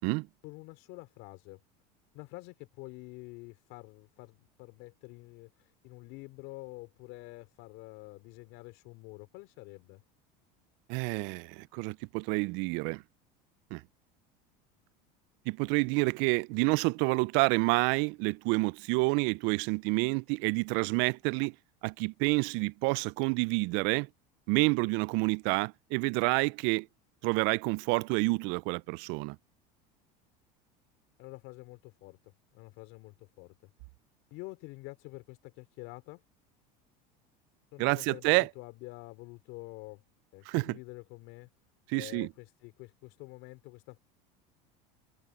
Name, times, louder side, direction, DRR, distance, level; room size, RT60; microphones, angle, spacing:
voice 1, 0.4-1.6 2.1-10.0 31.2-33.5 34.3-36.2 37.7-40.0 40.3-41.5 41.9-44.0, left 23 dB, 65° left, 3.9 m, -48 dB
voice 2, 10.9-13.0 13.7-13.8 15.5-21.6 21.8-24.1 24.5-26.9 27.2-29.4 37.8-38.5 40.5-40.8 41.9-42.3, right 29 dB, 60° right, 0.4 m, -28 dB
supercardioid pair, 105°, 21 cm